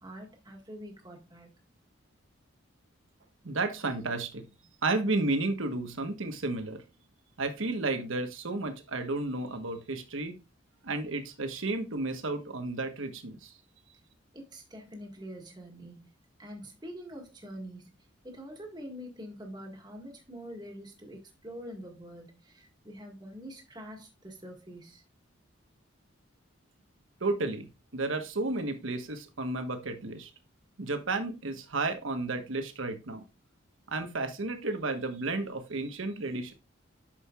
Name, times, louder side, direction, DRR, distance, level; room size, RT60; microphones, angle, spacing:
voice 1, 0.0-1.5 14.3-16.1 16.4-17.9 18.2-25.0, equal, 20° right, 1.7 m, -45 dB
voice 2, 3.4-4.4 4.8-6.8 7.4-10.4 10.8-13.5 27.2-27.7 27.9-30.3 30.8-33.2 33.9-36.5, right 2 dB, 80° right, 1.2 m, -32 dB
8.7 x 6.4 x 2.4 m
head